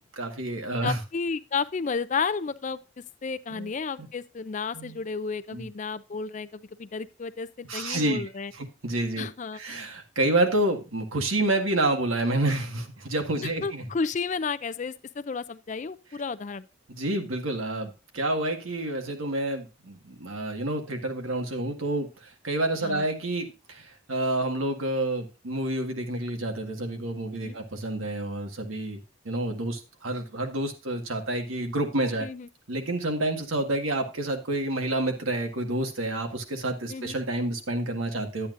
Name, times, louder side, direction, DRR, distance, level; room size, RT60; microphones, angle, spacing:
voice 1, 0.1-1.0 3.5-3.7 4.7-5.0 5.5-5.7 7.7-8.2 8.6-9.3 9.5-13.9 16.9-32.3 32.7-38.5, right 1 dB, 90° right, 1.7 m, -29 dB
voice 2, 0.8-2.8 3.2-8.5 9.2-9.6 13.6-16.7 22.8-23.0 27.3-27.6 32.2-32.5 36.9-37.2, left 5 dB, 35° left, 0.4 m, -32 dB
11.0 x 8.7 x 2.5 m
head